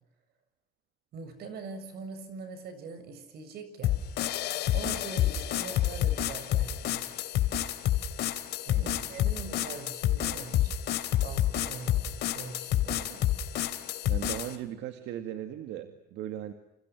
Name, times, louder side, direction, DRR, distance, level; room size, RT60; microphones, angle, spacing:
voice 1, 1.1-4.0 4.7-7.2 8.7-10.7 11.2-13.3, right 4 dB, 65° right, 9 dB, 7.4 m, -43 dB
sound 1, 3.8-14.6, left 12 dB, 75° left, 3.1 m, -29 dB
voice 2, 8.8-9.1 14.1-16.5, right 11 dB, 90° right, 7 dB, 2.2 m, -38 dB
29.0 x 29.0 x 6.3 m, 0.90 s
cardioid pair, 150°, 18 cm